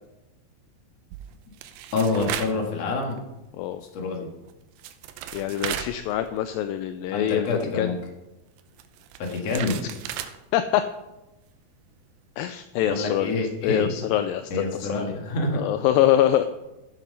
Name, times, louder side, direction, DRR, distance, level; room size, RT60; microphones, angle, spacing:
sound 1, 1.1-2.6 3.0-3.2 4.5-4.6 4.8-6.7 6.9-7.0 8.6-10.4, right 10 dB, 85° right, 2.6 m, -35 dB
voice 1, 1.9-3.2 3.8-4.3 7.1-8.0 9.2-9.7 12.8-14.0 14.5-15.6, left 3 dB, 50° left, 1 dB, 2.7 m, -27 dB
voice 2, 5.3-7.5 7.7-7.9 10.5-10.8 12.4-13.3 13.6-15.0 15.5-16.5, left 11 dB, 80° left, 10 dB, 2.2 m, -24 dB
14.0 x 7.4 x 5.3 m, 1.0 s
omnidirectional pair, 4.2 m